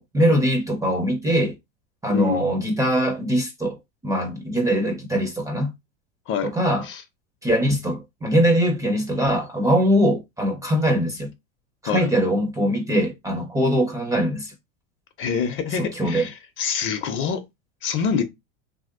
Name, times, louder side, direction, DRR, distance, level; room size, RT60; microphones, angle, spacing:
voice 1, 0.0-1.5 2.0-3.8 4.0-5.7 6.4-6.9 7.4-11.3 11.8-14.5 15.8-16.3, equal, 10° right, 0.5 m, -22 dB
voice 2, 2.1-2.5 6.3-6.5 6.9-7.0 11.8-12.1 15.2-17.4 17.8-18.2, left 7 dB, 35° left, 0.6 m, -25 dB
2.9 x 2.7 x 2.5 m
supercardioid pair, 120°, 35 cm